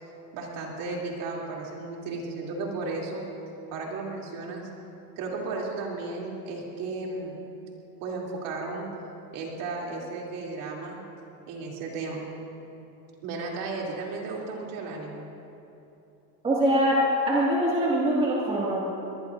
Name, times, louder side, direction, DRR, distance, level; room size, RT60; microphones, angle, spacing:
voice 1, 0.3-3.2 3.7-4.7 5.2-7.4 8.0-8.9 9.3-11.0 11.5-12.2 13.2-15.3, right 3 dB, 45° right, -2 dB, 3.1 m, -34 dB
voice 2, 16.4-18.9, equal, 10° right, -6 dB, 2.2 m, -23 dB
23.0 x 19.5 x 2.6 m, 2.9 s
supercardioid pair, 155°, 48 cm